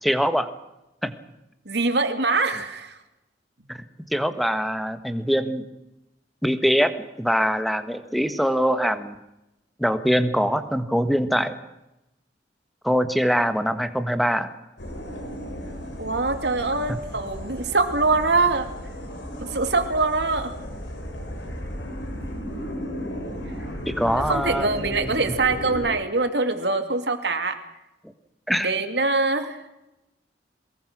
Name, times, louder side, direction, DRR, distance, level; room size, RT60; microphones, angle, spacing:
voice 1, 0.0-0.5 1.0-1.1 2.5-2.6 3.7-3.8 4.1-5.6 6.4-6.9 7.2-9.2 9.8-11.5 12.8-14.5 16.9-17.0 23.9-25.3 28.5-28.7, equal, ahead, 10 dB, 1.5 m, -23 dB
voice 2, 1.7-2.9 16.0-18.7 19.4-20.5 24.3-27.6 28.6-29.6, right 3 dB, 70° right, 7 dB, 2.6 m, -23 dB
sound 1, 14.8-25.9, equal, 85° left, 6.0 m, -35 dB
23.5 x 21.0 x 6.2 m, 0.91 s
head